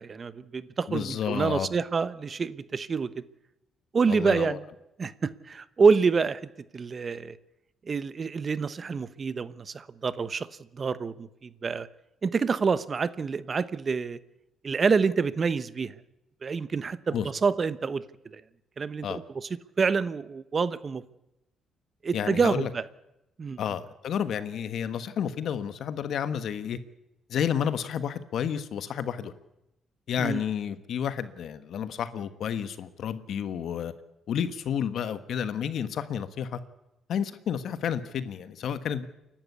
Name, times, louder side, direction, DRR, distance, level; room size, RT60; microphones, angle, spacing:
voice 1, 0.0-3.1 3.9-4.6 5.0-6.4 6.7-7.4 7.9-10.5 10.7-11.9 12.2-14.2 14.6-15.9 16.4-18.4 18.8-19.5 19.8-21.0 22.0-22.8 23.4-23.6 30.2-30.4, right 5 dB, 40° right, 1.0 m, -27 dB
voice 2, 0.9-1.7 4.1-4.6 17.1-17.3 19.0-19.2 22.1-22.7 23.6-26.8 27.3-29.3 30.1-33.9 34.3-36.6 37.1-39.1, left 8 dB, 70° left, 1.4 m, -31 dB
29.0 x 12.0 x 8.2 m
cardioid pair, 90°, 0 cm